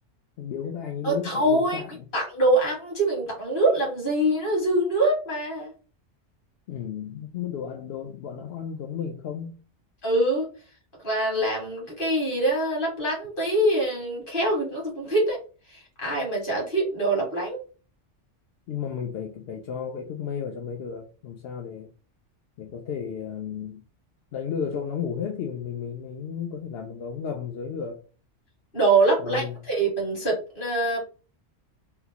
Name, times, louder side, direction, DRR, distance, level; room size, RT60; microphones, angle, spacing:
voice 1, 0.4-1.9 6.7-9.6 18.7-21.9 22.6-23.8 24.3-28.0 29.2-29.6, left 7 dB, 65° left, 0.7 m, -33 dB
voice 2, 1.0-1.8 2.1-5.7 10.0-10.5 11.0-15.4 15.7-17.6 28.7-31.0, right 2 dB, 45° left, 1.9 m, -24 dB
3.7 x 2.3 x 2.8 m
omnidirectional pair, 1.2 m